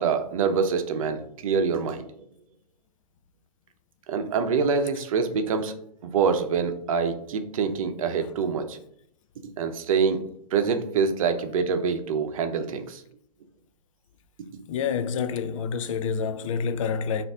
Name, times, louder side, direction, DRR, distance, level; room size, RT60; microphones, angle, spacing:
voice 1, 0.0-2.1 4.1-5.7 6.0-8.8 9.6-10.2 10.5-13.0, right 5 dB, 55° right, 0.7 m, -25 dB
voice 2, 14.7-17.2, left 6 dB, 55° left, 0.4 m, -28 dB
5.3 x 2.6 x 3.5 m
hypercardioid pair, 125°, 20 cm